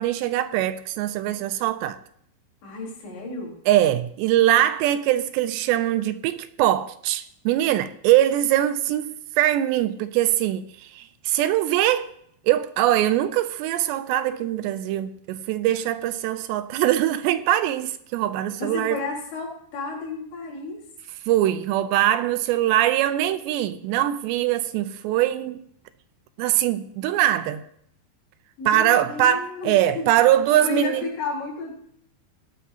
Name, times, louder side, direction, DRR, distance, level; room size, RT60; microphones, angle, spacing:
voice 1, 0.0-2.0 3.7-10.6 10.9-12.1 12.5-19.0 21.3-25.6 26.4-27.6 28.7-31.1, right 13 dB, 80° right, 2.8 m, -22 dB
voice 2, 2.6-3.6 18.6-20.8 28.6-30.1 30.5-31.8, left 4 dB, 75° left, 6.1 m, -32 dB
18.0 x 12.0 x 2.8 m
omnidirectional pair, 5.1 m